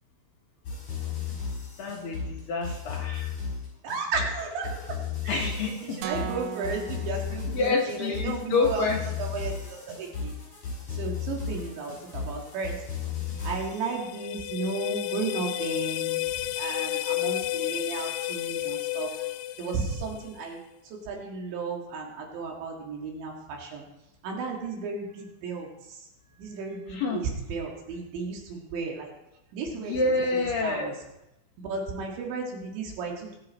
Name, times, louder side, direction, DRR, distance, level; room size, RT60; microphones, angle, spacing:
sound 1, 0.6-13.9, left 6 dB, 40° left, 5.9 m, -35 dB
voice 1, 1.8-3.4 5.3-6.0 7.5-9.0 26.9-27.2 29.7-30.9, left 3 dB, 65° left, 0 dB, 2.3 m, -28 dB
voice 2, 3.8-5.0 5.2-8.9 9.2-10.3 10.9-12.8 13.4-19.1 19.6-20.6 20.8-23.9 24.2-26.1 26.4-29.1 29.5-30.0 30.3-30.9 31.6-33.4, right 4 dB, 70° right, 0 dB, 4.0 m, -34 dB
sound 2, 6.0-8.1, right 9 dB, 85° right, 2.1 m, -38 dB
sound 3, 13.4-20.4, left 17 dB, 90° left, 3.3 m, -32 dB
21.5 x 8.2 x 4.1 m, 0.88 s
omnidirectional pair, 5.7 m